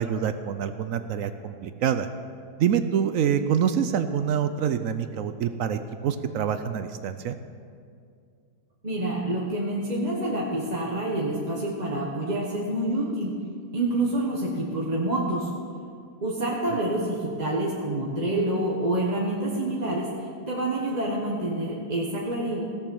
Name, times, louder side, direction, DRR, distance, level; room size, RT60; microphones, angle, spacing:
voice 1, 0.0-2.1 2.6-7.4, right 8 dB, 65° right, 10 dB, 0.9 m, -26 dB
voice 2, 8.8-13.4 13.7-15.5 16.2-20.1 20.5-22.6, right 1 dB, 30° right, -3 dB, 1.2 m, -27 dB
16.5 x 7.0 x 7.0 m, 2.3 s
omnidirectional pair, 1.7 m